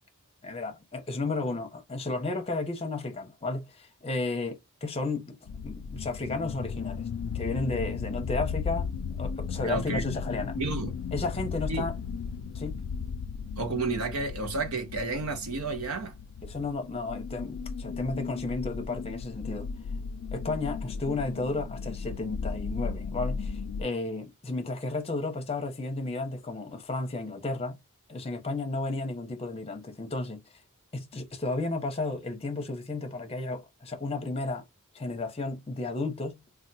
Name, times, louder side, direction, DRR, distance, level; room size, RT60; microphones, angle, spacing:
voice 1, 0.4-5.4 5.6-7.1 7.3-8.9 9.2-10.6 11.1-11.9 12.5-12.8 16.4-19.7 20.3-27.8 28.1-30.4 30.9-34.6 34.9-36.4, left 3 dB, 25° left, 0.7 m, -33 dB
sound 1, 5.5-23.8, left 5 dB, 70° left, 0.3 m, -35 dB
voice 2, 9.6-10.0 10.6-10.9 11.7-11.9 13.6-16.1, right 3 dB, 70° right, 0.8 m, -31 dB
3.4 x 2.3 x 2.6 m
head